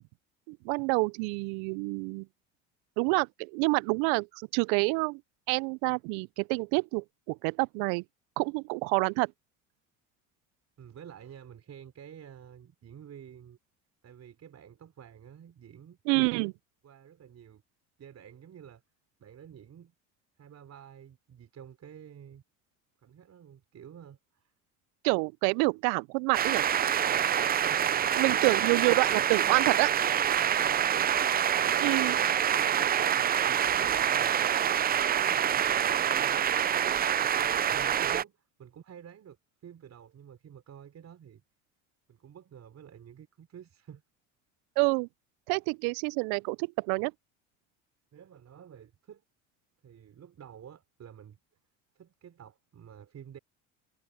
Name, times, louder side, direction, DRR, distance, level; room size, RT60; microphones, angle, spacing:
voice 1, 0.5-2.3 3.0-5.2 5.5-8.0 8.4-9.3 16.1-16.5 25.0-26.7 28.2-29.9 31.8-32.2 44.8-45.1 45.5-47.1, right 31 dB, 70° right, 0.6 m, -28 dB
voice 2, 10.8-13.6 14.0-16.0 16.8-17.6 18.0-18.8 19.2-19.9 20.4-22.4 23.0-24.5 27.1-27.4 27.7-28.1 30.4-31.3 31.6-31.9 32.6-34.3 35.1-36.4 37.1-41.4 42.1-44.0 48.1-49.2 49.8-51.4 51.9-53.4, right 9 dB, 40° right, 4.6 m, -50 dB
sound 1, 26.3-38.2, right 9 dB, 25° right, 0.5 m, -26 dB
hypercardioid pair, 80°, 39 cm